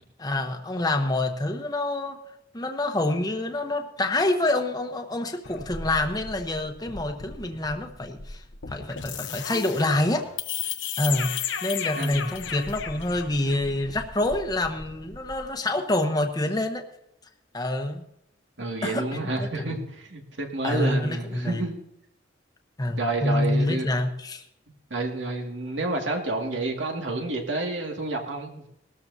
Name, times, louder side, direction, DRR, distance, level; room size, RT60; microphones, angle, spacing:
voice 1, 0.2-2.2 2.5-10.3 11.0-11.4 11.6-16.8 17.5-18.0 18.8-19.5 20.6-21.6 22.8-24.4, left 2 dB, 20° left, 4 dB, 1.0 m, -27 dB
sound 1, 5.4-15.5, left 7 dB, 90° left, 1.0 m, -35 dB
voice 2, 12.0-12.3 18.6-21.8 23.0-23.9 24.9-28.7, right 2 dB, 85° right, 1 dB, 2.2 m, -29 dB
19.0 x 13.5 x 2.8 m, 0.79 s
head